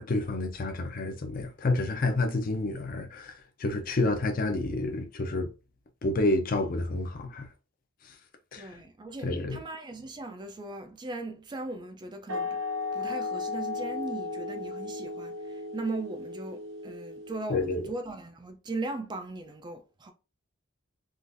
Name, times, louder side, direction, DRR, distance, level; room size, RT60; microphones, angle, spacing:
voice 1, 0.0-5.5 6.0-7.5 8.5-8.7 9.2-9.6 17.5-17.9, left 2 dB, 45° left, 0.5 m, -29 dB
voice 2, 8.6-12.6 12.9-20.1, right 2 dB, 20° right, 0.3 m, -38 dB
sound 1, 12.3-17.7, left 3 dB, 70° right, 0.6 m, -35 dB
3.7 x 2.4 x 2.5 m
head